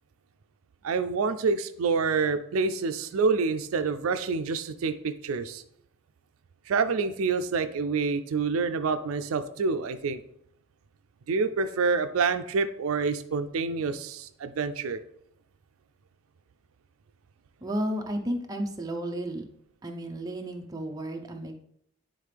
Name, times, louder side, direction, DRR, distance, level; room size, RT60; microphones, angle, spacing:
voice 1, 0.8-5.6 6.7-10.2 11.3-15.0, right 4 dB, 85° right, 10 dB, 0.4 m, -27 dB
voice 2, 17.6-19.5 19.8-21.5, equal, 20° right, 3 dB, 0.6 m, -32 dB
9.1 x 3.7 x 3.4 m, 0.72 s
head